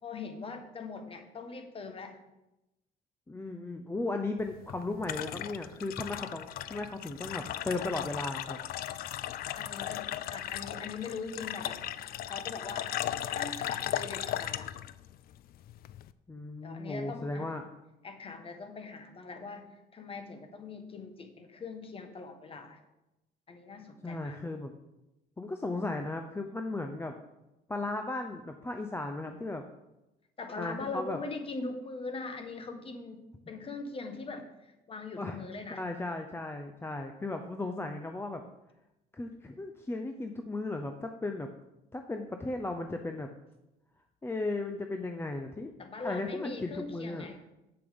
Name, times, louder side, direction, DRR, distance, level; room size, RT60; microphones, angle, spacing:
voice 1, 0.0-2.2 9.6-11.9 12.2-12.9 13.3-14.7 16.6-17.5 18.0-22.8 23.5-24.4 30.4-35.8 45.8-47.4, left 4 dB, 35° left, 6 dB, 1.3 m, -41 dB
voice 2, 3.3-8.6 16.3-17.6 24.0-24.7 25.4-27.1 27.7-29.6 30.6-31.2 35.2-35.4 35.7-38.4 39.1-41.5 41.9-43.3 44.2-45.7 46.0-47.4, left 2 dB, 15° left, 6 dB, 0.6 m, -36 dB
sound 1, 4.4-16.1, left 12 dB, 60° left, 0.4 m, -37 dB
7.9 x 7.1 x 5.2 m, 0.95 s
cardioid pair, 110°, 17 cm